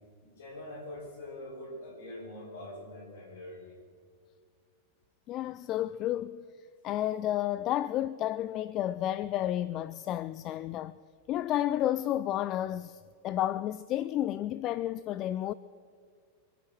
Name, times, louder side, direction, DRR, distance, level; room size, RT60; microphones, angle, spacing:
voice 1, 0.2-3.8, left 1 dB, 60° left, 4.6 m, -44 dB
voice 2, 5.3-6.4 6.8-11.0 11.3-15.5, left 12 dB, 35° left, 0.3 m, -31 dB
23.5 x 9.1 x 6.1 m
figure-of-eight pair, 90°, 0 cm